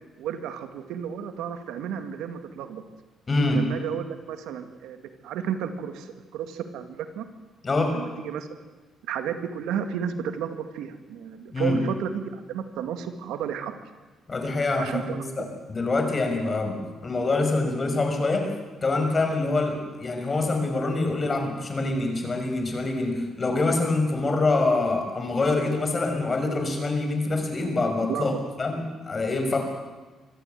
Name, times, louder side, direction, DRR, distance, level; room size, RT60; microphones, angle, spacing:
voice 1, 0.2-2.8 3.5-7.2 7.9-8.5 9.1-13.8 14.8-15.5 28.1-28.4, right 8 dB, 90° right, 9 dB, 1.9 m, -32 dB
voice 2, 3.3-3.7 7.6-8.0 11.5-11.8 14.3-18.5 18.8-28.3 28.6-29.6, left 2 dB, 35° left, 5 dB, 5.7 m, -25 dB
24.5 x 15.0 x 9.3 m, 1.3 s
cardioid pair, 90°, 0 cm